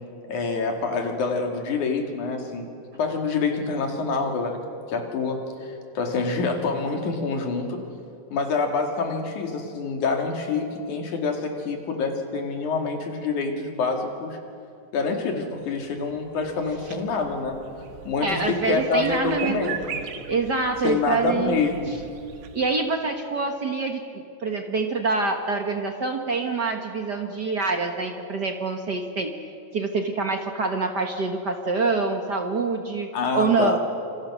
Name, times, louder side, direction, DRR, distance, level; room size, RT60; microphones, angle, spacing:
voice 1, 0.3-2.7 3.0-4.6 4.9-7.8 8.3-14.4 14.9-17.6 18.1-20.0 20.8-21.9 33.1-33.8, left 4 dB, 90° left, 3 dB, 3.9 m, -26 dB
sound 1, 15.4-22.6, right 8 dB, 85° right, 2.8 m, -40 dB
voice 2, 18.2-19.7 20.3-21.6 22.5-24.0 24.4-29.3 29.7-33.8, right 4 dB, 45° right, 4 dB, 1.4 m, -26 dB
27.0 x 26.0 x 6.3 m, 2.5 s
omnidirectional pair, 3.4 m